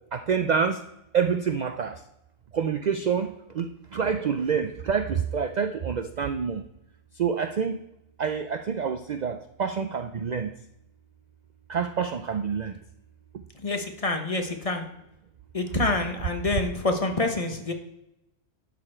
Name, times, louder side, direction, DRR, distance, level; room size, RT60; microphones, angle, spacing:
voice 1, 0.1-0.8 1.1-2.0 2.5-6.6 7.2-7.8 8.2-10.5 11.7-12.8, right 6 dB, 75° right, 8 dB, 0.4 m, -27 dB
voice 2, 13.5-14.9 15.5-17.7, left 3 dB, 30° left, 5 dB, 0.8 m, -27 dB
11.5 x 6.4 x 4.4 m, 0.85 s
omnidirectional pair, 1.4 m